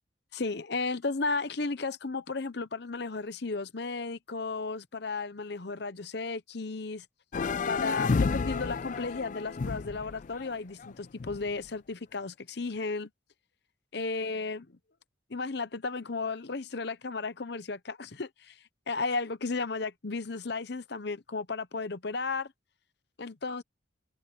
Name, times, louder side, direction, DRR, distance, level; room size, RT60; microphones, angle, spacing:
voice 1, 0.3-7.0 7.7-13.1 13.9-14.7 15.3-18.6 18.9-22.5 23.2-23.6, left 3 dB, 55° left, 0.8 m, -34 dB
sound 1, 7.3-11.6, left 4 dB, 40° left, 0.3 m, -31 dB
head